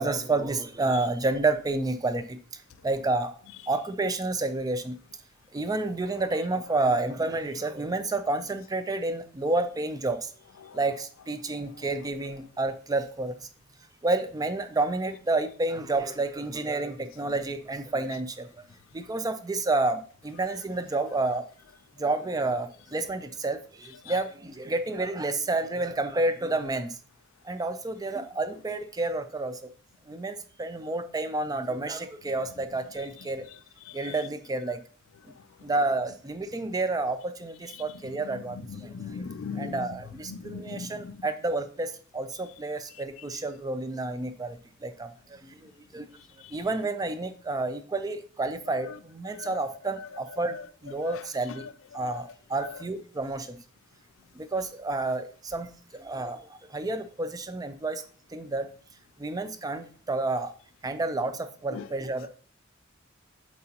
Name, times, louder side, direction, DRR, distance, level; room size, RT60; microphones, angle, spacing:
voice 1, 0.0-2.4 2.8-3.3 3.7-5.0 5.5-10.3 10.7-13.3 14.0-18.5 18.9-21.4 22.0-27.0 27.4-29.6 30.1-33.5 33.9-34.8 35.6-38.9 39.6-46.1 46.5-50.6 50.8-51.7 51.9-53.6 54.4-55.7 56.0-58.0 58.3-58.7 59.2-60.5 60.8-62.4, right 2 dB, 20° right, 0.4 m, -30 dB
voice 2, 38.8-39.8 40.3-41.2 49.4-49.5 50.5-50.6 51.0-51.2 51.6-51.7 61.7-61.8, left 5 dB, 70° left, 0.4 m, -38 dB
7.5 x 4.3 x 2.9 m
head